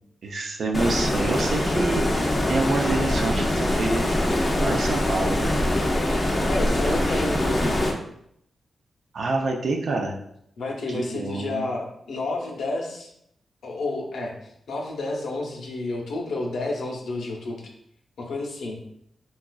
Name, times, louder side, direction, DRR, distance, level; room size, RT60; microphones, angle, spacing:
voice 1, 0.2-4.1 4.6-5.6 6.6-7.2 9.1-10.2 10.9-11.7, right 2 dB, 60° right, 2 dB, 0.5 m, -27 dB
Stream, 0.7-7.9, left 1 dB, 20° left, 0.5 m, -23 dB
voice 2, 6.4-7.9 10.6-13.1 13.6-14.3 14.7-17.7 18.2-18.8, left 2 dB, 80° left, -1 dB, 0.7 m, -30 dB
4.0 x 2.4 x 2.3 m, 0.73 s
wide cardioid pair, 135°, 0 cm